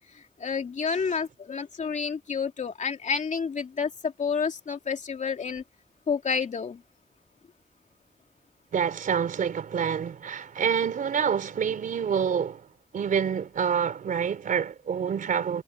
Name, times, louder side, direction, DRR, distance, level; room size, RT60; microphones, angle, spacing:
voice 1, 0.0-5.6 6.1-6.8, left 5 dB, 60° left, 2.8 m, -30 dB
voice 2, 8.7-12.7 12.9-15.6, right 7 dB, 80° right, 4.1 m, -27 dB
cardioid pair, 60°, 14 cm